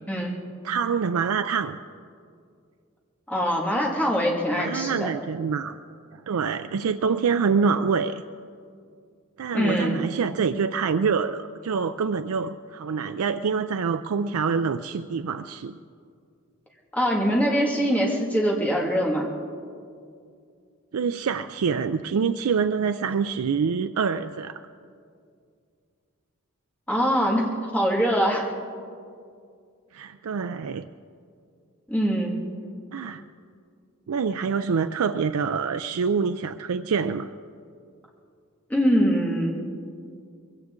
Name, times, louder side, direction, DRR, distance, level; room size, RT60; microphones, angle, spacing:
voice 1, 0.6-1.8 4.6-5.8 6.1-8.2 9.4-15.8 20.9-24.6 29.9-30.9 32.9-33.2 34.1-37.3, right 5 dB, 85° right, 9 dB, 0.4 m, -26 dB
voice 2, 3.3-5.1 9.5-10.0 16.9-19.3 26.9-28.5 31.9-32.4 38.7-39.6, equal, 5° left, -3 dB, 2.0 m, -23 dB
22.0 x 16.5 x 3.7 m, 2.3 s
head